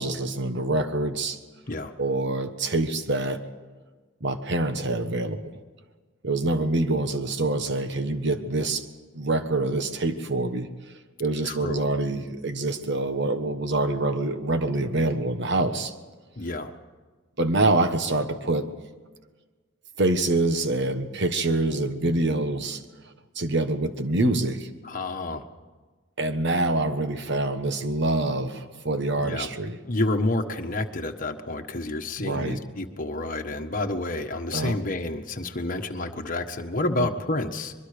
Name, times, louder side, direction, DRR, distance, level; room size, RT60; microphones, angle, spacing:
voice 1, 0.0-1.4 2.0-3.4 4.2-5.5 6.2-8.9 9.1-10.7 11.2-15.9 17.4-18.7 20.0-22.8 23.3-24.7 26.2-29.8 32.2-32.6 34.5-34.8 37.0-37.1, right 2 dB, 60° right, 9 dB, 1.4 m, -25 dB
voice 2, 11.4-11.9 16.4-16.7 24.8-25.5 29.2-29.5 29.9-37.7, left 2 dB, 40° left, 4 dB, 1.4 m, -29 dB
24.0 x 22.0 x 5.1 m, 1.4 s
head